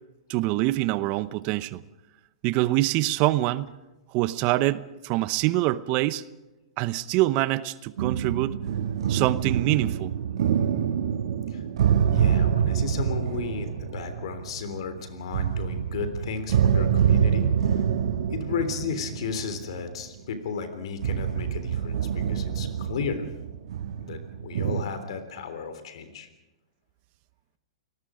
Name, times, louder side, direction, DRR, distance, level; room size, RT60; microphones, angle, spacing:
voice 1, 0.3-1.8 2.4-3.7 4.1-6.2 6.8-8.5 9.1-10.1, right 17 dB, 40° right, 16 dB, 0.8 m, -25 dB
sound 1, 8.0-14.9 15.3-20.1 21.0-24.8, right 8 dB, 70° right, 1.5 m, -26 dB
voice 2, 12.1-17.8 18.3-23.3 23.9-26.3, left 6 dB, 65° left, 10 dB, 3.5 m, -34 dB
29.0 x 19.0 x 5.1 m, 1.0 s
hypercardioid pair, 120°, 3 cm